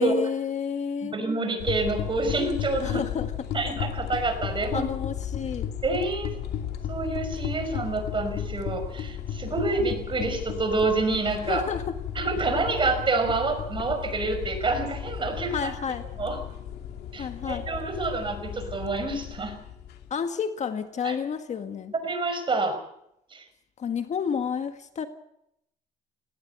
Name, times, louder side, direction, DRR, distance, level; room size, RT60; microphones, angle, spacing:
voice 1, 0.0-1.2 2.8-3.3 4.7-5.7 11.5-11.9 15.5-16.1 17.2-17.7 20.1-21.9 23.8-25.1, left 7 dB, 45° left, 8 dB, 1.7 m, -30 dB
voice 2, 1.0-3.0 3.5-4.9 5.8-6.4 6.9-11.6 12.1-15.7 16.2-16.4 17.1-19.6 21.0-21.2 21.9-22.8 23.3-23.4, right 3 dB, 30° right, 8 dB, 5.5 m, -27 dB
sound 1, 1.6-20.1, left 9 dB, 75° left, 2.6 m, -34 dB
18.5 x 18.0 x 8.2 m, 0.79 s
cardioid pair, 110°, 17 cm